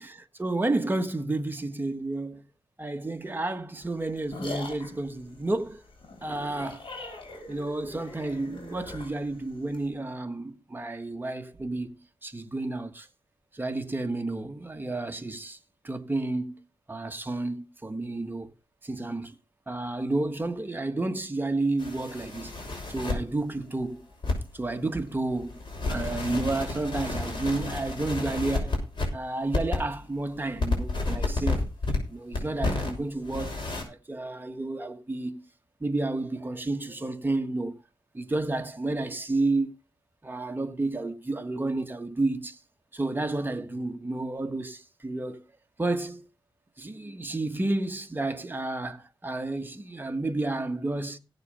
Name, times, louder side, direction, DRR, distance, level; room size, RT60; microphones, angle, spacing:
voice 1, 0.0-2.4 2.8-5.8 6.2-6.9 7.5-11.9 12.2-13.1 13.5-15.6 15.8-16.6 16.9-18.5 18.8-19.3 19.7-22.5 22.9-24.1 24.5-25.6 25.9-28.8 29.1-31.7 32.1-35.4 35.8-37.8 38.1-39.7 40.2-42.6 42.9-45.4 45.8-46.3 46.8-51.2, right 2 dB, 20° right, 1.6 m, -31 dB
sound 1, 3.8-9.9, left 2 dB, 70° left, 5.1 m, -41 dB
sound 2, 21.8-23.2 24.2-24.6 25.0-29.1 29.5-30.0 30.4-32.0 32.3-33.0 33.2-33.8, left 3 dB, 55° left, 6.5 m, -30 dB
17.0 x 6.8 x 5.5 m
wide cardioid pair, 120°, 9 cm